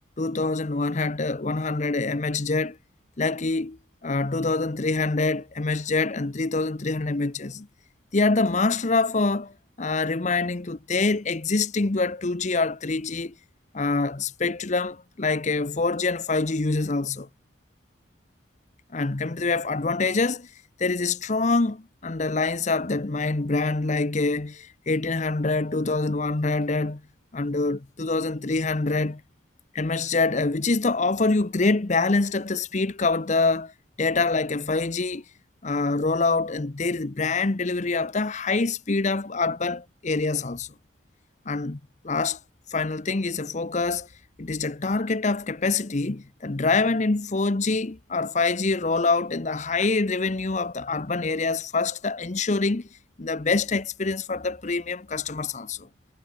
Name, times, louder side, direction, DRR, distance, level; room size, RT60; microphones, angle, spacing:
voice 1, 0.2-2.8 3.2-7.7 8.1-13.3 13.7-17.3 18.9-20.5 20.8-27.0 27.3-29.2 29.7-33.7 34.0-35.2 35.6-40.7 41.5-41.8 42.0-42.4 42.7-44.1 44.4-52.9 53.2-55.9, left 3 dB, 40° left, 0.8 m, -25 dB
head